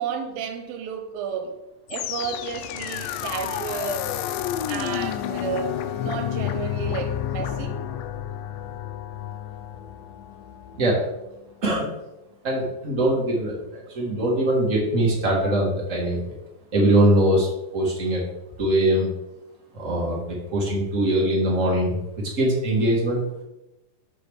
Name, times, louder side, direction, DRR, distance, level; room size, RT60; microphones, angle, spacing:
voice 1, 0.0-1.6 1.9-4.1 4.7-7.8, right 7 dB, 80° right, 2.5 m, -32 dB
sound 1, 1.9-11.0, left 10 dB, 80° left, 2.1 m, -30 dB
voice 2, 11.6-12.0 12.4-16.2 16.7-18.2 18.6-19.1 19.7-21.9 22.4-23.2, right 1 dB, 50° right, 0.9 m, -22 dB
6.8 x 3.4 x 6.2 m
omnidirectional pair, 4.1 m